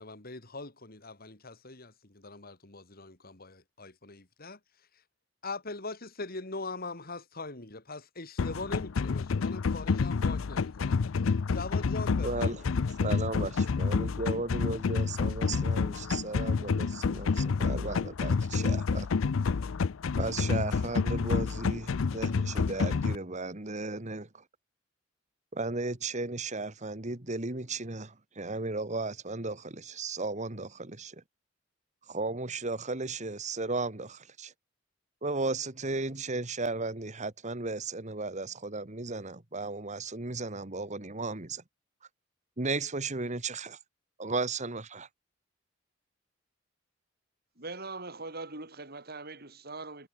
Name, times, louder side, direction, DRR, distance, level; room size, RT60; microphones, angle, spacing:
voice 1, 0.0-4.6 5.4-11.0 11.5-12.6, left 3 dB, 50° left, 3.3 m, -41 dB
sound 1, 8.4-23.2, left 5 dB, 90° left, 0.5 m, -29 dB
voice 2, 12.2-12.6 13.0-19.1 20.2-24.4 25.5-31.2 32.1-34.5 35.2-41.6 42.6-43.8 44.2-45.1, right 3 dB, 35° right, 1.9 m, -35 dB
voice 3, 47.6-50.1, right 3 dB, 50° right, 5.7 m, -41 dB
head